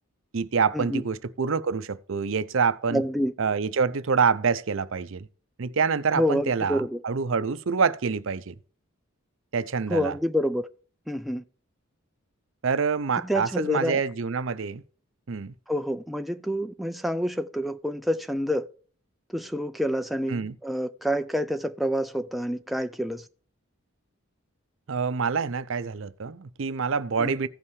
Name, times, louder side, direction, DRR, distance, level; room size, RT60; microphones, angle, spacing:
voice 1, 0.3-3.0 3.4-5.3 5.6-8.5 9.5-10.1 12.6-14.8 15.3-15.5 20.3-20.5 24.9-27.5, right 5 dB, 65° right, 0.6 m, -26 dB
voice 2, 2.9-3.3 6.2-7.0 9.9-10.7 11.1-11.4 13.2-14.0 15.7-18.7 19.3-23.3 27.2-27.4, equal, ahead, 0.3 m, -27 dB
16.0 x 5.5 x 3.2 m
head